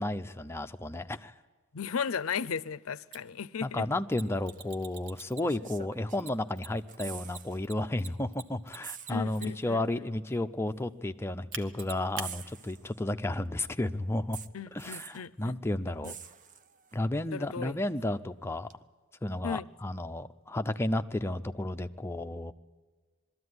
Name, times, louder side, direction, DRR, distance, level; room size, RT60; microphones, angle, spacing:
voice 1, 0.0-1.3 3.6-14.4 14.7-16.2 16.9-18.7 19.2-22.5, left 1 dB, 10° left, 0.6 m, -32 dB
voice 2, 1.7-3.9 9.1-10.0 14.5-16.1 17.3-17.8 19.4-19.7, left 6 dB, 75° left, 0.6 m, -36 dB
Mechanisms, 3.1-3.2 4.1-5.7 6.2-9.7 11.5-12.3, right 5 dB, 65° right, 1.3 m, -43 dB
sound 1, 4.5-4.7 5.4-6.5 6.8-7.6 7.9-8.1 8.8-9.7 10.7-10.8 12.2-13.2 14.3-15.3 16.0-17.0 18.7-18.8, right 7 dB, 40° right, 0.6 m, -46 dB
21.5 x 13.5 x 9.5 m
head